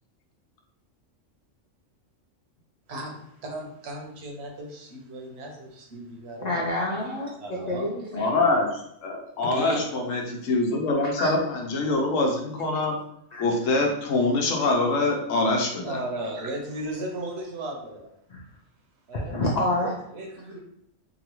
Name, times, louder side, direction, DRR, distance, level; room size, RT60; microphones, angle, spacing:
voice 1, 2.9-6.7 7.4-8.5 9.5-9.8 15.8-18.1 19.1-19.3 20.1-20.6, right 1 dB, 60° right, 1 dB, 0.8 m, -36 dB
voice 2, 6.4-7.3 7.7-8.3 11.2-11.3 13.3-13.4 18.3-18.4 19.1-19.9, left 1 dB, 65° left, -3 dB, 0.4 m, -27 dB
voice 3, 8.1-13.0 13.4-16.0, left 2 dB, 85° left, 1 dB, 1.1 m, -24 dB
3.0 x 2.4 x 2.9 m, 0.75 s
omnidirectional pair, 1.3 m